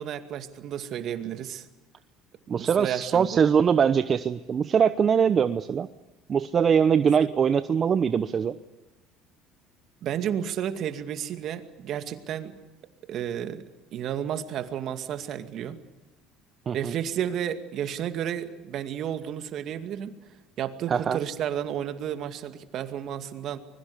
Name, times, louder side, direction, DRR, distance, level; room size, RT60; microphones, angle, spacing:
voice 1, 0.0-1.7 2.5-3.5 7.0-7.3 10.0-12.5 13.1-13.6 13.9-15.8 16.7-20.1 20.6-23.6, right 9 dB, 55° right, 9 dB, 2.3 m, -32 dB
voice 2, 2.5-5.9 6.3-8.6 16.7-16.9 20.9-21.2, right 7 dB, 40° right, 13 dB, 0.9 m, -22 dB
25.0 x 22.0 x 8.4 m, 1.0 s
supercardioid pair, 80°, 0 cm